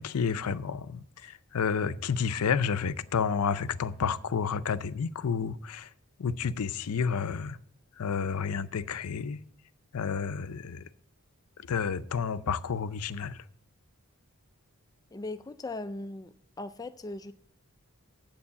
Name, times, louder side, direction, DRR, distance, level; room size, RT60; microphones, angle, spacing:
voice 1, 0.0-5.9 6.2-7.6 8.0-9.4 9.9-10.8 11.7-13.4, left 6 dB, 85° left, 0.5 m, -30 dB
voice 2, 15.1-17.3, left 2 dB, 15° left, 0.3 m, -39 dB
7.7 x 7.1 x 8.5 m
head